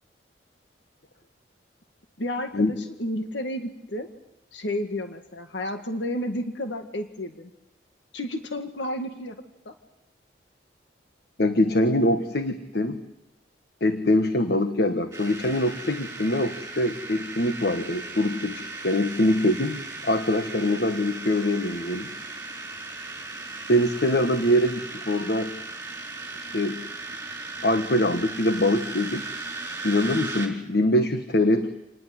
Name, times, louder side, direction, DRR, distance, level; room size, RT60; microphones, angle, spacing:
voice 1, 2.2-4.1 4.5-7.5 8.1-9.4 9.7-9.8, left 1 dB, 85° left, 6 dB, 1.9 m, -31 dB
voice 2, 11.4-13.0 13.8-22.1 23.7-25.6 26.5-26.9 27.6-29.4 29.8-31.7, left 1 dB, 60° left, 8 dB, 1.4 m, -23 dB
sound 1, 15.1-30.5, right 3 dB, 15° right, 4.8 m, -37 dB
27.5 x 20.0 x 7.9 m, 0.94 s
head